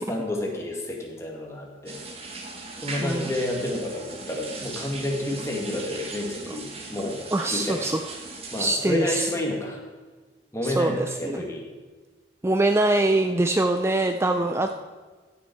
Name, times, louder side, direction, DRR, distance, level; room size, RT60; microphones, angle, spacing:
voice 1, 0.1-2.0 2.8-7.2 7.5-7.8 8.5-9.8 10.5-11.6 14.3-14.5, left 1 dB, 15° left, -1 dB, 1.9 m, -30 dB
sound 1, 1.9-8.6, right 3 dB, 35° right, 1.2 m, -38 dB
voice 2, 7.3-8.0 8.6-9.3 10.6-11.4 12.4-14.7, right 2 dB, 15° right, 6 dB, 0.4 m, -23 dB
15.0 x 7.1 x 4.6 m, 1.4 s
head